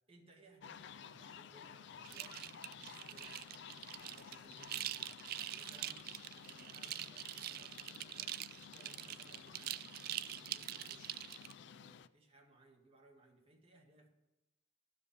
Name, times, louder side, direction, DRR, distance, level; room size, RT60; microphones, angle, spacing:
voice 1, 0.1-2.4 2.8-6.0 6.3-8.3 8.7-9.9 10.4-11.2 11.6-14.1, right 2 dB, 30° right, 0 dB, 1.9 m, -64 dB
sound 1, 0.6-12.1, left 7 dB, 65° left, 0.4 m, -54 dB
sound 2, 2.0-11.5, right 13 dB, 55° right, 0.3 m, -44 dB
12.5 x 5.2 x 8.7 m, 0.95 s
head